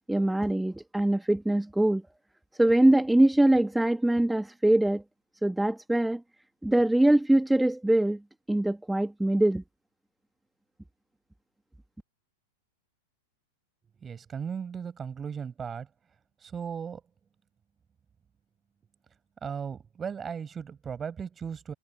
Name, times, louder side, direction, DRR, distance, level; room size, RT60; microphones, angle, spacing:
voice 1, 0.1-2.0 2.6-5.0 5.4-6.2 6.6-8.2 8.5-9.6, right 1 dB, 5° right, 2.0 m, -23 dB
voice 2, 14.0-15.9 16.4-17.0 19.4-21.7, right 7 dB, 20° right, 7.3 m, -36 dB
figure-of-eight pair, 95°, 0 cm